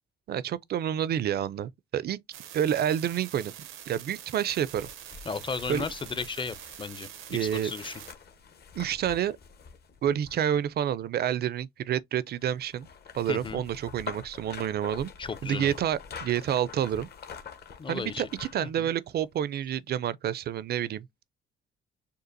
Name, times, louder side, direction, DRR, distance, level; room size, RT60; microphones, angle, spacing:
voice 1, 0.3-2.2 2.5-3.5 3.9-4.9 5.7-5.9 7.3-7.7 8.7-9.4 10.0-12.9 13.1-15.1 15.4-17.1 17.9-21.1, right 10 dB, 55° right, 0.4 m, -29 dB
sound 1, 2.3-8.1, right 11 dB, 90° right, 0.7 m, -45 dB
sound 2, 4.6-10.7 12.4-18.7 19.1-19.2, left 6 dB, 55° left, 1.0 m, -46 dB
voice 2, 5.3-8.0 13.3-13.6 15.2-15.7 17.8-18.3 18.8-18.9, left 5 dB, 25° left, 0.6 m, -35 dB
6.6 x 2.5 x 2.6 m
cardioid pair, 90°, 20 cm